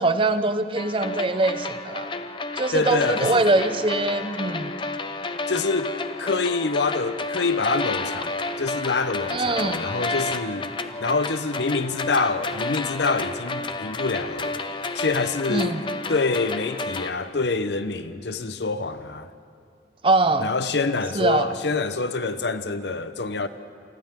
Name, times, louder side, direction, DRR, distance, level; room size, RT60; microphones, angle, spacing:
voice 1, 0.0-2.1 2.6-4.7 9.3-9.9 15.5-15.8 20.0-20.5 21.1-21.5, right 2 dB, 30° right, 0.7 m, -23 dB
sound 1, 0.8-17.1, left 3 dB, 25° left, 0.7 m, -31 dB
voice 2, 2.7-3.5 5.5-5.9 6.2-10.7 11.0-14.6 14.9-15.7 16.1-19.3 20.4-23.5, left 3 dB, 75° left, 0.9 m, -26 dB
28.5 x 25.0 x 3.7 m
head